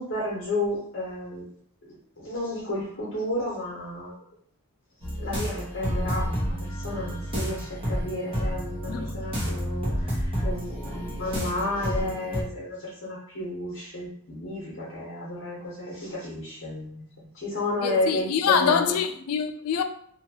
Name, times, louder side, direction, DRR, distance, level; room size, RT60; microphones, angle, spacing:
voice 1, 0.0-1.4 1.8-2.0 2.2-4.2 5.2-17.0 17.3-18.9, left 1 dB, 55° left, 0.8 m, -32 dB
sound 1, 5.0-12.4, equal, 25° right, 0.8 m, -30 dB
voice 2, 8.9-9.2 17.8-19.8, left 7 dB, 80° left, 0.3 m, -25 dB
2.8 x 2.2 x 2.8 m
head